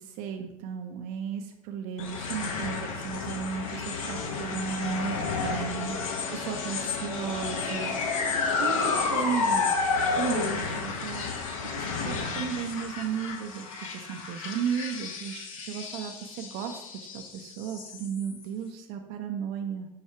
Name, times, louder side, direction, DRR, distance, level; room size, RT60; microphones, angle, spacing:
voice 1, 0.0-6.0 6.3-9.7 10.2-19.9, right 7 dB, 50° right, 5 dB, 0.4 m, -35 dB
sound 1, 2.0-18.4, left 4 dB, 70° left, 0.7 m, -31 dB
sound 2, 4.1-8.1, left 4 dB, 45° left, 1.5 m, -51 dB
4.3 x 2.3 x 4.6 m, 0.94 s
hypercardioid pair, 90°, 18 cm